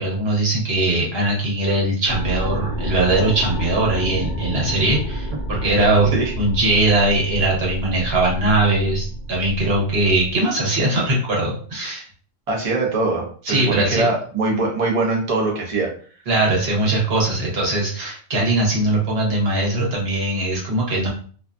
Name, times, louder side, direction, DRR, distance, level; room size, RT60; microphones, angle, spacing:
voice 1, 0.0-12.1 13.5-14.1 16.3-21.1, right 2 dB, 65° right, -3 dB, 1.1 m, -20 dB
sound 1, 2.1-10.3, right 1 dB, 65° left, 1.0 m, -29 dB
voice 2, 12.5-15.9, right 3 dB, 40° right, -1 dB, 0.6 m, -22 dB
2.5 x 2.1 x 2.5 m, 0.43 s
omnidirectional pair, 1.1 m